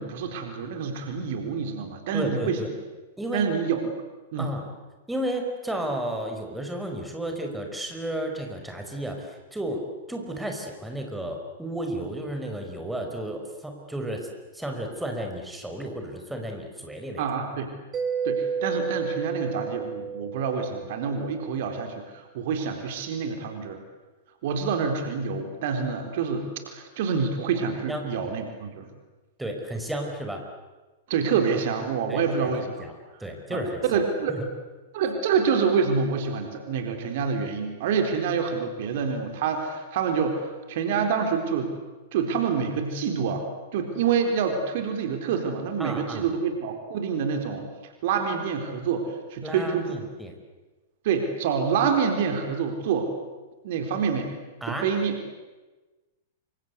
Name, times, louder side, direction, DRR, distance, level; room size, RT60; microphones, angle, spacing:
voice 1, 0.0-2.6 3.3-3.8 4.3-4.5 17.2-17.7 18.2-23.8 24.4-28.9 31.1-32.9 33.5-33.6 33.9-34.4 34.9-41.7 42.1-43.5 43.7-47.7 48.0-50.0 51.0-53.1 53.6-54.3 54.7-55.2, right 6 dB, 50° right, 5 dB, 4.2 m, -27 dB
voice 2, 2.1-2.7 3.2-3.4 4.4-4.7 5.1-9.8 10.1-14.3 14.5-17.3 27.9-28.1 29.4-30.4 32.1-32.5 32.8-32.9 33.2-33.8 34.3-34.5 45.8-46.3 49.4-50.3 54.6-54.9, right 1 dB, 5° right, 3 dB, 5.3 m, -32 dB
Mallet percussion, 17.9-21.4, right 6 dB, 25° right, 4.1 m, -31 dB
27.5 x 26.0 x 8.2 m, 1.2 s
figure-of-eight pair, 100°, 0 cm